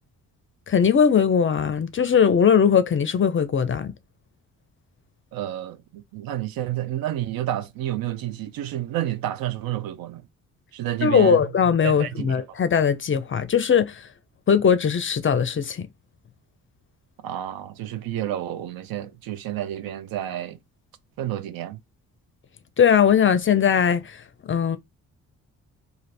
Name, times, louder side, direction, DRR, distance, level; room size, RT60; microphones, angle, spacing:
voice 1, 0.7-3.9 11.0-14.1 14.5-15.9 22.8-24.8, left 7 dB, 30° left, 0.5 m, -20 dB
voice 2, 5.3-10.2 10.7-11.4 11.8-12.6 17.2-20.6 21.2-21.8, right 12 dB, 60° right, 0.5 m, -30 dB
2.5 x 2.5 x 3.2 m
hypercardioid pair, 50°, 40 cm